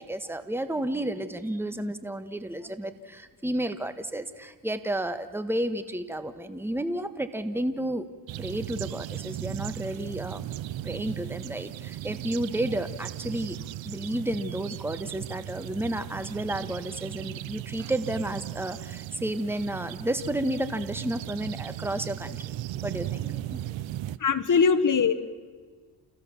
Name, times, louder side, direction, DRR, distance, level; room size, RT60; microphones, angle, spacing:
voice 1, 0.0-8.1 8.4-10.5 10.8-13.6 13.8-22.5 22.8-23.7, right 1 dB, 5° right, 10 dB, 1.4 m, -32 dB
sound 1, 8.3-24.2, right 13 dB, 80° right, 0.8 m, -37 dB
voice 2, 24.2-25.1, left 5 dB, 45° left, 10 dB, 1.4 m, -21 dB
29.5 x 16.0 x 7.1 m, 1.5 s
cardioid pair, 85°, 45 cm